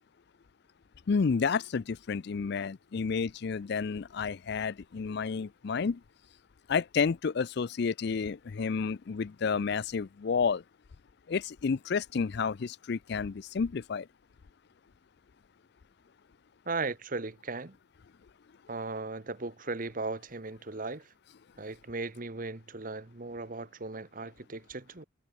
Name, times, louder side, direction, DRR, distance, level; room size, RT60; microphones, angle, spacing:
voice 1, 1.1-6.0 6.7-10.6 11.3-14.1, left 5 dB, 55° left, 0.4 m, -30 dB
voice 2, 16.6-17.7 18.7-21.1 21.6-25.1, right 3 dB, 45° right, 1.2 m, -37 dB
head